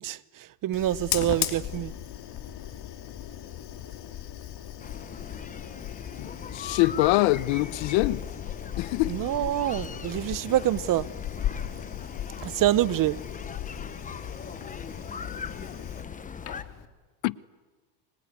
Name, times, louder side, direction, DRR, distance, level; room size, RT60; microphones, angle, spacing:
voice 1, 0.0-1.9 9.1-11.1 12.4-13.2, right 13 dB, 40° right, 0.9 m, -26 dB
Fire, 0.7-16.8, left 11 dB, 50° left, 3.0 m, -37 dB
sound 1, 4.8-16.6, left 5 dB, 15° left, 1.0 m, -40 dB
voice 2, 6.2-8.2 8.8-9.2 17.2-17.5, left 19 dB, 70° left, 1.0 m, -24 dB
25.5 x 22.5 x 9.7 m
supercardioid pair, 110°, 48 cm